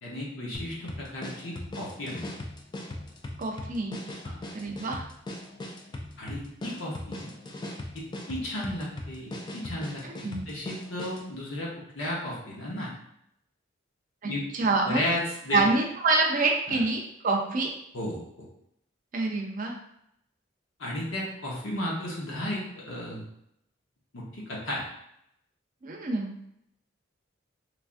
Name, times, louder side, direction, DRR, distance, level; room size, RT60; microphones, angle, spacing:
voice 1, 0.0-2.3 4.2-4.3 6.2-7.3 7.9-12.9 14.2-14.4 14.8-15.6 16.7-16.8 17.9-18.5 20.8-23.2 24.1-24.8, left 1 dB, 80° left, -4 dB, 0.8 m, -34 dB
sound 1, 0.5-11.3, left 1 dB, 25° left, 0.3 m, -39 dB
voice 2, 3.4-4.0 4.5-5.1 10.0-10.4 14.2-15.0 15.5-17.7 19.1-19.7 25.8-26.3, right 3 dB, 45° right, 1 dB, 0.5 m, -26 dB
3.3 x 2.4 x 2.4 m, 0.77 s
head